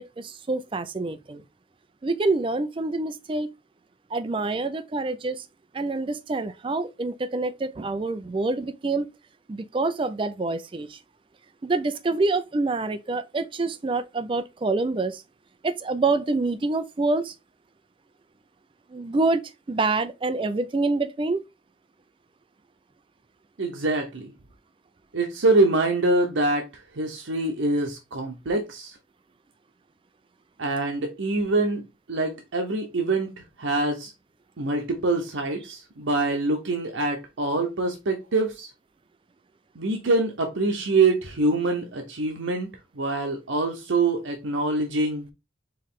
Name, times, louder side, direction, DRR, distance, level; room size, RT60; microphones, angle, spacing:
voice 1, 0.0-1.4 2.0-3.5 4.1-5.4 5.7-9.1 9.5-11.0 11.6-15.2 15.6-17.3 18.9-19.4 19.7-21.4, right 3 dB, 25° right, 0.4 m, -26 dB
voice 2, 23.6-24.3 25.1-26.7 26.9-29.0 30.6-34.1 34.6-38.7 39.7-42.7 42.9-45.3, right 2 dB, 85° right, 0.8 m, -25 dB
4.6 x 3.1 x 3.6 m
head